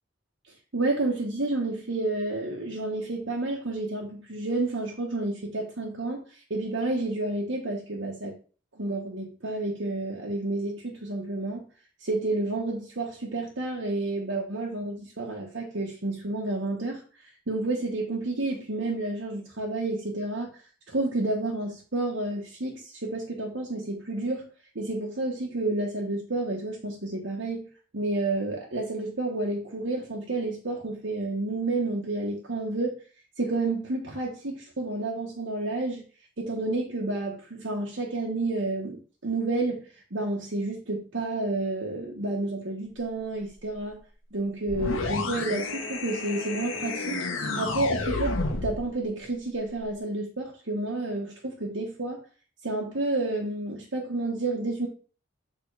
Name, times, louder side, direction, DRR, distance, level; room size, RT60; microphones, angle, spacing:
voice 1, 0.7-8.4 8.8-11.7 12.0-20.6 20.9-24.5 24.7-27.7 27.9-33.0 33.4-36.0 36.4-44.0 44.3-52.2 52.6-54.9, right 2 dB, 70° right, 1.1 m, -30 dB
sound 1, 44.7-48.9, left 3 dB, 90° left, 1.3 m, -30 dB
6.6 x 3.7 x 4.7 m
head